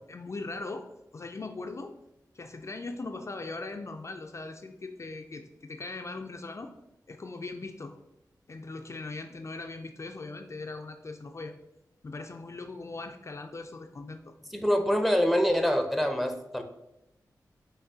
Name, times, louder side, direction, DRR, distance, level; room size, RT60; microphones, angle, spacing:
voice 1, 0.1-0.8 1.1-1.9 2.3-6.7 7.1-7.9 8.5-11.5 12.0-14.3, left 3 dB, 40° left, 5 dB, 0.4 m, -39 dB
voice 2, 14.5-16.6, equal, ahead, 6 dB, 0.6 m, -25 dB
5.8 x 2.6 x 2.7 m, 0.89 s
cardioid pair, 55°, 7 cm